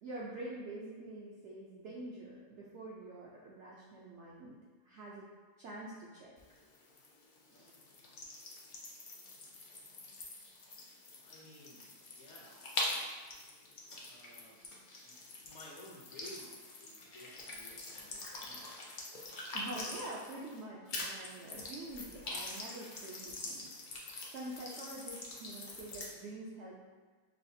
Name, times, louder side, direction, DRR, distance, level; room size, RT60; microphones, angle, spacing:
voice 1, 0.0-4.6 4.8-5.3 5.6-6.3 7.5-7.7 19.5-23.9 24.3-26.7, right 2 dB, 70° right, -5 dB, 0.6 m, -46 dB
sound 1, 6.4-20.6 20.9-26.1, left 2 dB, 90° left, 0.4 m, -44 dB
voice 2, 11.2-13.0 14.0-14.6 15.0-18.9, left 1 dB, 60° left, -4 dB, 0.8 m, -55 dB
5.5 x 2.4 x 2.6 m, 1.4 s
omnidirectional pair, 1.7 m